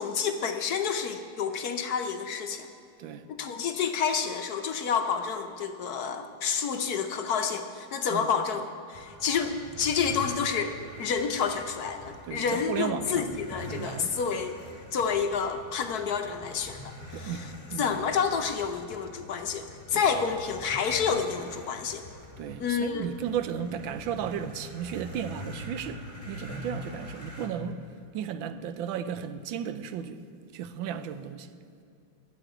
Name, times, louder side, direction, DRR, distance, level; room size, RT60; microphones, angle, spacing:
voice 1, 0.0-2.7 3.3-10.7 11.0-14.5 14.9-17.5 17.8-22.0 22.6-23.1, left 6 dB, 60° left, 1.1 m, -29 dB
sound 1, 8.9-27.5, left 1 dB, 25° left, 2.0 m, -45 dB
voice 2, 12.3-13.4 13.7-14.2 17.1-18.0 22.4-27.8 28.1-30.2 30.5-31.5, right 8 dB, 80° right, 1.4 m, -34 dB
12.5 x 7.9 x 9.3 m
omnidirectional pair, 2.1 m